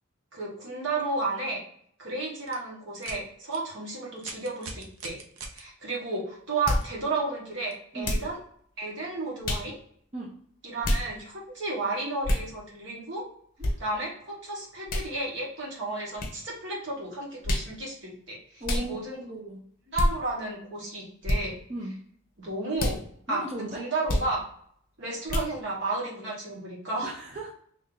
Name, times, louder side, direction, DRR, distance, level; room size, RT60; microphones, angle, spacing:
voice 1, 0.3-1.6 2.0-5.2 5.5-8.4 8.8-9.8 10.6-13.2 13.8-19.2 19.9-21.5 22.4-23.0 23.3-24.4 25.0-27.1, right 2 dB, 55° right, -3 dB, 1.4 m, -32 dB
sound 1, 2.4-2.5 3.0-3.2 3.5-3.6 4.2-5.6 6.8-6.9 7.7-7.8, right 4 dB, 80° right, 0.7 m, -41 dB
sound 2, 6.7-6.9 8.0-8.3 9.4-9.7 10.8-11.1 12.2-12.5 13.6-13.7 14.9-15.1 16.2-16.3 17.4-17.7 18.6-18.9 19.9-20.1 21.2-21.4 22.8-23.0 24.1-24.3 25.3-25.5, left 1 dB, 40° left, 0.6 m, -26 dB
voice 2, 18.6-19.6 21.7-21.9 23.3-23.8 27.0-27.5, right 1 dB, 30° right, -4 dB, 0.6 m, -36 dB
3.2 x 2.6 x 3.7 m, 0.63 s
head